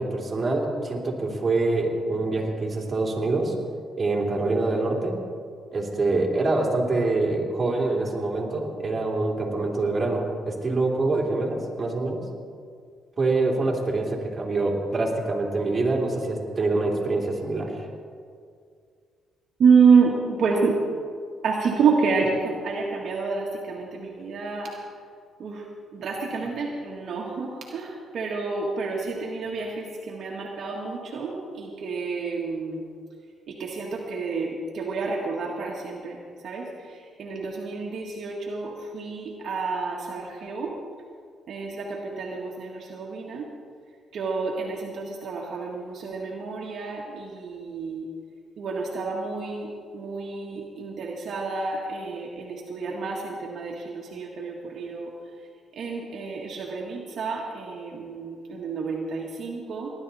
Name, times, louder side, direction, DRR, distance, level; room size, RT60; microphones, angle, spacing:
voice 1, 0.0-3.5 4.0-5.2 5.7-12.2 13.2-17.9, right 2 dB, 30° right, -2 dB, 3.1 m, -25 dB
voice 2, 19.6-20.8 21.4-24.7 25.4-25.6 25.9-32.9 33.5-40.7 41.5-43.5 44.1-48.1 48.6-55.1 55.7-59.9, right 5 dB, 60° right, -2 dB, 1.7 m, -28 dB
19.0 x 11.5 x 4.2 m, 2.2 s
cardioid pair, 90°, 0 cm